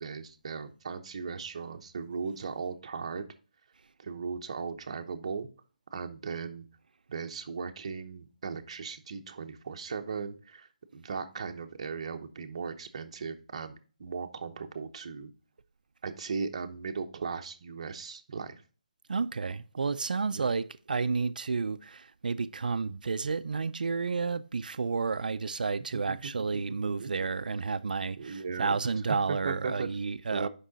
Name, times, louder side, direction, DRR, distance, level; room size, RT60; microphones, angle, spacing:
voice 1, 0.0-3.3 4.0-5.5 5.9-6.7 7.1-15.3 16.0-18.5 20.3-20.5 27.0-27.1 28.2-28.8 29.3-29.9 30.3-30.5, right 5 dB, 45° right, 0.8 m, -37 dB
voice 2, 19.1-30.5, right 4 dB, 75° right, 0.4 m, -31 dB
6.1 x 5.4 x 4.0 m
hypercardioid pair, 170°, 5 cm